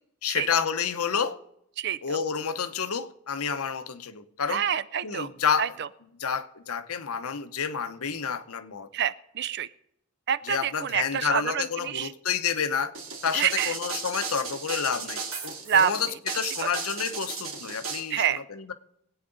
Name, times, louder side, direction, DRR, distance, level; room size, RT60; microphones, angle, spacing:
voice 1, 0.2-1.4 2.0-4.6 5.0-5.7 6.2-8.9 10.4-12.9 13.2-16.1 16.3-18.7, left 6 dB, 80° left, 10 dB, 0.8 m, -29 dB
voice 2, 4.5-5.3 5.6-5.9 8.9-9.7 10.3-12.1 13.3-13.7 15.7-15.9 18.1-18.4, right 8 dB, 50° right, 16 dB, 0.4 m, -27 dB
sound 1, 12.9-18.0, right 5 dB, 65° right, 2.7 m, -35 dB
22.5 x 8.7 x 4.0 m, 0.78 s
head